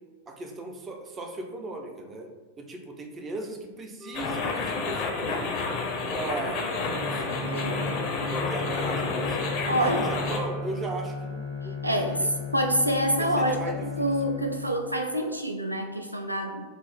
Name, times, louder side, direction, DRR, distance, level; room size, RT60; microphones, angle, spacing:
voice 1, 0.3-2.3 2.6-5.6 6.1-9.5 9.8-12.3 13.2-14.1, right 2 dB, 20° right, 3 dB, 0.5 m, -37 dB
Wind instrument woodwind instrument, 4.0-10.7, equal, 50° right, 1.0 m, -43 dB
sound 1, 4.1-10.4, left 4 dB, 40° left, 0.5 m, -30 dB
Bowed string instrument, 6.8-15.1, left 3 dB, 70° right, 0.7 m, -35 dB
voice 2, 7.5-7.9 9.7-10.0 11.8-16.6, equal, 85° right, 3 dB, 0.3 m, -27 dB
3.2 x 2.0 x 4.0 m, 1.3 s
figure-of-eight pair, 90°, 0 cm